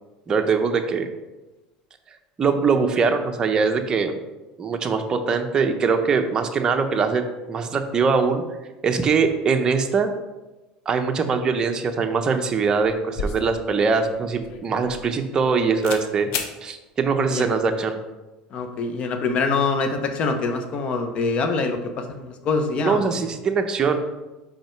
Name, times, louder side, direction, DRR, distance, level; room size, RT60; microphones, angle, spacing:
voice 1, 0.3-1.1 2.4-4.1 4.6-7.2 7.5-8.4 8.8-10.1 10.9-16.3 16.6-18.0 22.7-24.0, right 5 dB, 30° right, 5 dB, 0.8 m, -22 dB
sound 1, 13.2-15.5 15.8-16.0 16.3-16.5, left 5 dB, 75° left, 0.8 m, -32 dB
voice 2, 18.5-23.0, left 4 dB, 45° left, 6 dB, 0.9 m, -24 dB
5.2 x 5.1 x 4.6 m, 1.1 s
supercardioid pair, 115°, 3 cm